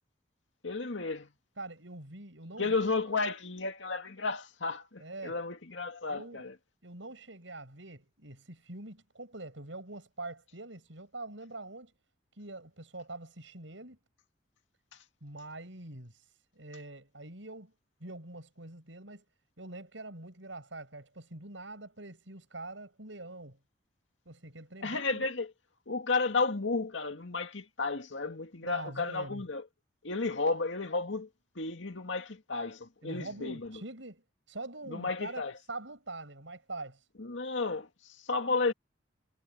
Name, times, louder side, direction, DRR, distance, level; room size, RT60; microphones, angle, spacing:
voice 1, 0.6-1.3 2.6-6.5 14.9-15.0 24.8-25.5 25.9-29.7 30.0-31.3 31.6-33.8 34.9-35.5 37.2-38.7, left 3 dB, 85° left, 2.1 m, -33 dB
voice 2, 1.6-2.7 5.0-5.4 6.1-6.4 6.8-11.9 12.4-14.0 15.2-16.2 16.5-17.7 18.0-19.2 19.6-23.6 24.2-25.2 28.6-29.4 33.0-35.4 35.7-37.0, right 2 dB, 80° right, 6.8 m, -44 dB
head